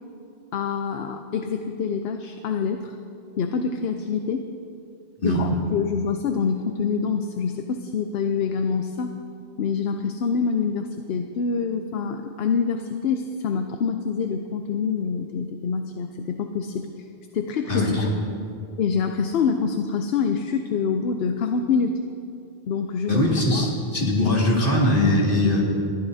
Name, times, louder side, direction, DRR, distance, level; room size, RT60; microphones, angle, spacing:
voice 1, 0.5-3.0 3.4-4.5 5.2-9.1 9.6-17.1 17.3-18.2 18.8-22.0 22.7-23.2 23.5-23.7, left 5 dB, 75° left, 6 dB, 0.9 m, -26 dB
voice 2, 17.7-18.0 23.1-25.6, left 1 dB, 55° left, -4 dB, 2.5 m, -21 dB
21.0 x 14.0 x 2.7 m, 2.5 s
omnidirectional pair, 1.1 m